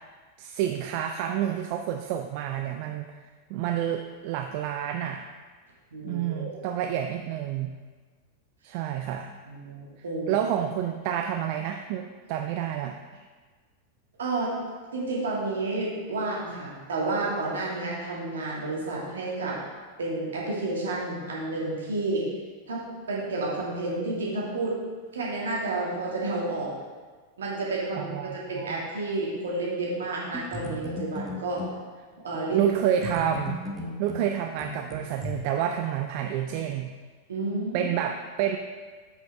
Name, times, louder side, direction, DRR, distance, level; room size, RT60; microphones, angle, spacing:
voice 1, 0.4-3.1 3.5-5.3 6.0-7.8 8.6-9.4 10.3-13.0 28.0-28.8 32.5-33.6 34.0-36.9 37.7-38.6, right 10 dB, 45° right, 5 dB, 0.3 m, -29 dB
voice 2, 5.9-6.6 9.5-10.3 14.2-14.5 14.9-19.6 20.0-22.3 22.7-24.8 25.1-26.7 27.4-31.6 32.2-32.8 33.8-33.9 37.3-37.9, right 2 dB, 65° right, -5 dB, 2.0 m, -30 dB
sound 1, 30.3-31.8 33.0-35.3, left 2 dB, 10° right, 1.1 m, -36 dB
7.6 x 5.4 x 3.4 m, 1.5 s
figure-of-eight pair, 90°, 0 cm